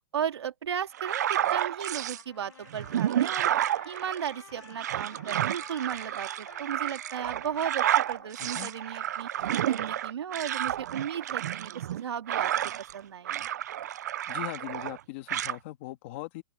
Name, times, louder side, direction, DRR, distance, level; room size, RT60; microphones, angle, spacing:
voice 1, 0.1-3.5 3.8-9.3 9.6-12.5 12.9-13.5, right 8 dB, 80° right, 2.7 m, -35 dB
sound 1, 0.9-2.2 2.7-13.0 13.2-15.0 15.3-15.6, right 11 dB, 40° right, 0.6 m, -30 dB
Trumpet, 1.8-9.7, left 8 dB, 85° left, 3.4 m, -53 dB
voice 2, 8.4-8.7 14.3-16.4, left 18 dB, 25° left, 1.7 m, -40 dB
open air
hypercardioid pair, 180°, 14 cm